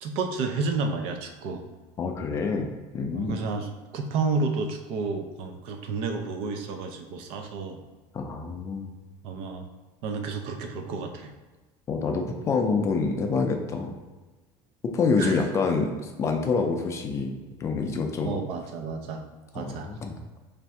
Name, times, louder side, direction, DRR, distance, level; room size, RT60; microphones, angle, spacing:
voice 1, 0.0-1.6 3.1-7.8 9.2-9.7 10.0-11.3 15.2-15.4 18.3-19.2 19.5-19.9, right 4 dB, 60° right, 5 dB, 0.5 m, -31 dB
voice 2, 2.0-2.7 2.9-3.4 8.1-8.9 11.9-13.9 14.9-18.4 19.5-20.2, left 4 dB, 25° left, 4 dB, 0.4 m, -27 dB
3.2 x 2.6 x 4.5 m, 1.3 s
cardioid pair, 160°, 11 cm